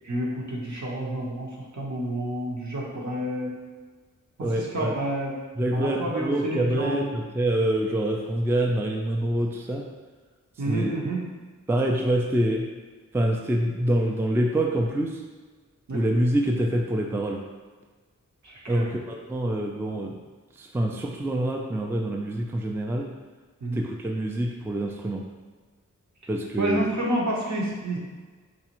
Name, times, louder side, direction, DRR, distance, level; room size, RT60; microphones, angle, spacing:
voice 1, 0.1-3.6 4.4-5.4 5.7-7.0 10.6-11.2 15.9-16.0 18.4-18.9 23.6-23.8 26.6-28.0, right 1 dB, 60° right, -3 dB, 0.9 m, -29 dB
voice 2, 4.4-4.9 5.6-9.8 10.7-11.1 11.7-12.6 13.1-15.2 15.9-17.4 18.7-20.2 20.6-23.1 23.7-25.2 26.3-26.9, right 1 dB, 5° right, 1 dB, 0.4 m, -26 dB
4.0 x 2.4 x 3.0 m, 1.4 s
cardioid pair, 40°, 33 cm